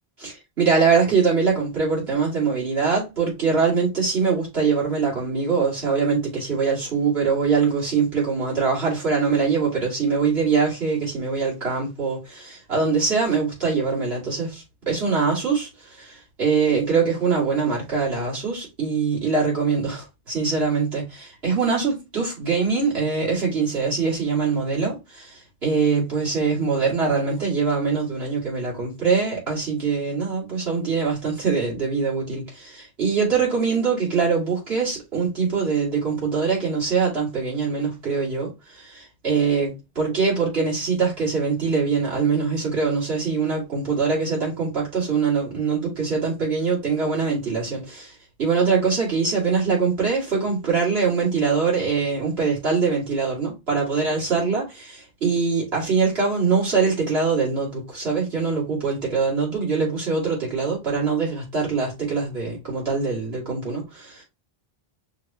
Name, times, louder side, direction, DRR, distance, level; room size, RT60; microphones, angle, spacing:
voice 1, 0.2-48.1 48.4-64.2, right 5 dB, 80° right, 2.8 m, -23 dB
6.1 x 2.5 x 2.8 m
omnidirectional pair, 1.0 m